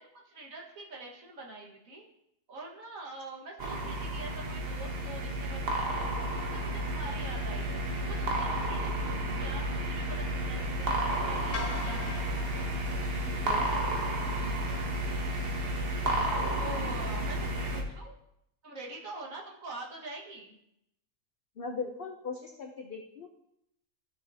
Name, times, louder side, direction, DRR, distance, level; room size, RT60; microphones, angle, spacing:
voice 1, 0.0-2.0 2.5-7.7 8.0-12.2 16.1-18.2 18.6-20.6, right 2 dB, 65° right, -1 dB, 2.0 m, -45 dB
sound 1, 3.6-17.8, right 1 dB, 45° right, 1.2 m, -32 dB
sound 2, 11.5-13.9, left 4 dB, 85° left, 1.4 m, -42 dB
voice 2, 13.3-13.7 21.6-23.3, left 4 dB, 50° left, 3 dB, 0.7 m, -39 dB
14.0 x 6.3 x 2.7 m, 0.79 s
omnidirectional pair, 1.5 m